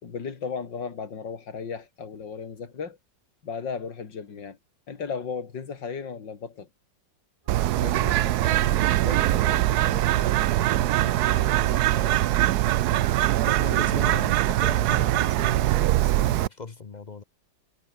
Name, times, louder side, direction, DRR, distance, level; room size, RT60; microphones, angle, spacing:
voice 1, 0.0-3.0 3.4-4.6 4.9-6.7 13.7-14.2, left 6 dB, 70° left, 3.2 m, -35 dB
sound 1, 7.5-14.3, right 4 dB, 25° right, 1.0 m, -42 dB
Bird, 7.5-16.5, right 15 dB, 70° right, 1.0 m, -22 dB
voice 2, 7.7-12.3 13.4-17.2, left 4 dB, 35° left, 0.7 m, -39 dB
omnidirectional pair, 2.0 m